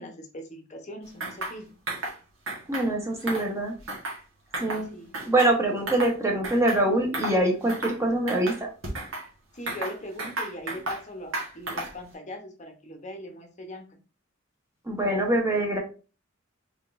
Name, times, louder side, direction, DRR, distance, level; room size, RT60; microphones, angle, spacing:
voice 1, 0.0-1.7 4.9-5.2 9.5-13.9, equal, 35° left, 3 dB, 0.9 m, -40 dB
sound 1, 1.2-1.6 1.9-2.2 2.5-2.9 3.2-4.2 4.5-4.8 5.1-6.1 6.4-6.8 7.1-7.4 7.7-8.0 8.3-9.3 9.7-11.0 11.3-12.0, right 2 dB, 70° right, 1.3 m, -33 dB
voice 2, 2.7-3.7 4.6-4.9 5.3-8.7 14.9-15.8, right 1 dB, 15° right, 1 dB, 1.0 m, -24 dB
3.7 x 3.5 x 2.5 m, 0.34 s
head